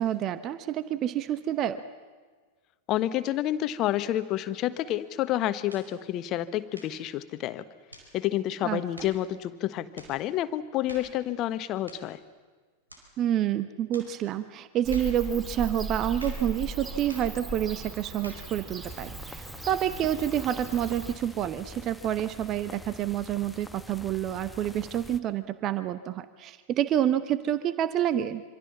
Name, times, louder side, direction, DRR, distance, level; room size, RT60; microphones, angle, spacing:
voice 1, 0.0-1.8 8.6-8.8 13.2-28.4, right 11 dB, 35° right, 13 dB, 1.0 m, -28 dB
voice 2, 2.9-7.6 8.1-12.2, left 13 dB, 35° left, 13 dB, 1.3 m, -29 dB
sound 1, 5.7-5.9 6.7-7.0 7.9-8.1 9.0-9.2 10.0-10.2 10.9-11.2 11.9-12.1 12.9-13.1 13.9-14.2 14.9-15.2 16.2-16.5 17.1-17.4 18.2-18.5, right 1 dB, 80° right, 4.9 m, -48 dB
Bird / Cricket, 14.8-21.1, right 2 dB, 15° right, 4.0 m, -38 dB
sound 2, 18.8-25.2, left 1 dB, 5° left, 1.2 m, -45 dB
27.0 x 25.5 x 7.3 m, 1.5 s
figure-of-eight pair, 90°, 0 cm